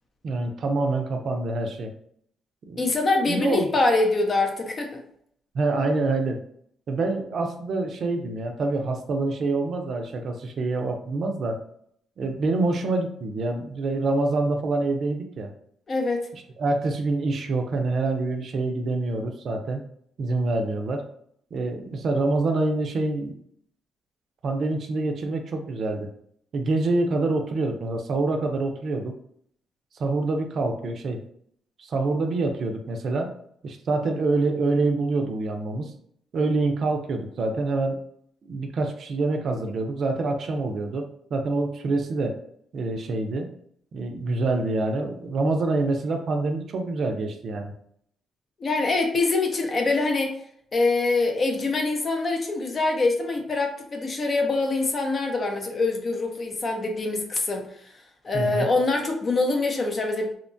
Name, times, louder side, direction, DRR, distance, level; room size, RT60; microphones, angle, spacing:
voice 1, 0.2-1.9 2.6-2.9 3.3-3.7 5.5-6.4 6.9-11.6 12.2-15.5 16.6-19.8 20.2-21.0 21.5-23.3 24.4-26.1 26.5-29.1 30.0-31.2 31.8-33.3 33.6-35.9 36.3-38.0 38.5-42.3 42.7-43.5 43.9-47.7 58.3-58.7, right 3 dB, 60° right, 4 dB, 0.4 m, -26 dB
voice 2, 2.8-5.0 15.9-16.3 48.6-50.3 50.7-57.9 58.2-60.4, left 3 dB, 40° left, 3 dB, 0.6 m, -24 dB
2.8 x 2.2 x 2.6 m, 0.67 s
cardioid pair, 90°, 0 cm